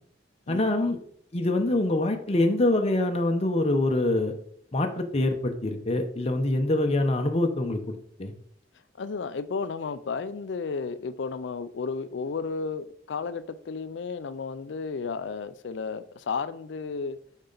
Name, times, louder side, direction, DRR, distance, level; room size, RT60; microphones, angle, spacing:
voice 1, 0.5-1.0 1.3-4.3 4.7-8.3, left 2 dB, 35° left, 0.7 m, -25 dB
voice 2, 9.0-17.2, left 5 dB, 70° left, 0.4 m, -33 dB
6.8 x 5.4 x 3.9 m
head